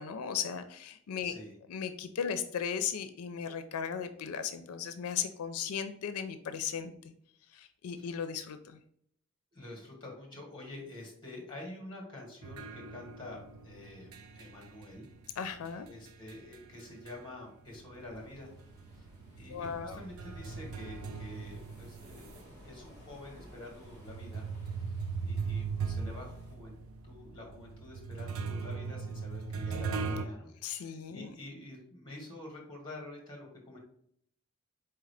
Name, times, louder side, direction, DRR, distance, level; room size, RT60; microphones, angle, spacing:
voice 1, 0.0-1.3 1.7-7.1 7.5-8.8 15.4-15.9 19.5-20.0 30.6-31.3, left 7 dB, 90° left, 9 dB, 0.4 m, -36 dB
voice 2, 1.2-1.5 8.0-8.2 9.5-15.1 15.9-18.5 18.9-19.1 19.4-24.5 24.9-26.7 27.0-33.8, left 1 dB, 20° left, 0 dB, 1.6 m, -48 dB
sound 1, 12.4-17.4 17.7-22.4 23.0-23.1 23.8-30.2, right 5 dB, 75° right, 0.5 m, -39 dB
sound 2, 18.0-26.5, equal, 20° right, 1.5 m, -56 dB
4.4 x 3.7 x 3.3 m, 0.68 s
head